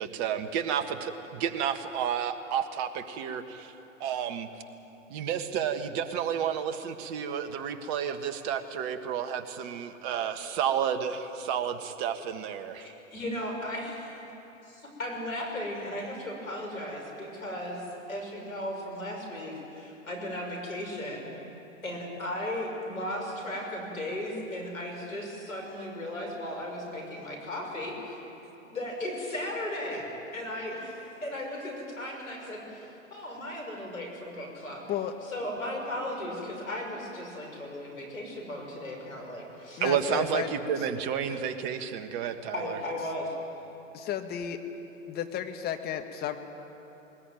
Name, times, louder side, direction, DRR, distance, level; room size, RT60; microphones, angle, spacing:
voice 1, 0.0-3.7 4.0-4.5 5.1-12.9 39.8-42.8, right 8 dB, 40° right, 8 dB, 1.6 m, -31 dB
voice 2, 12.8-14.2 14.6-21.3 21.8-28.2 28.7-30.0 30.3-34.9 35.3-39.8 41.3-41.4 42.5-43.3, left 1 dB, 85° left, 1 dB, 6.5 m, -36 dB
voice 3, 39.8-40.9 43.9-44.6 45.1-46.4, left 9 dB, 25° left, 6 dB, 1.6 m, -33 dB
20.5 x 20.0 x 9.2 m, 3.0 s
hypercardioid pair, 115°, 40 cm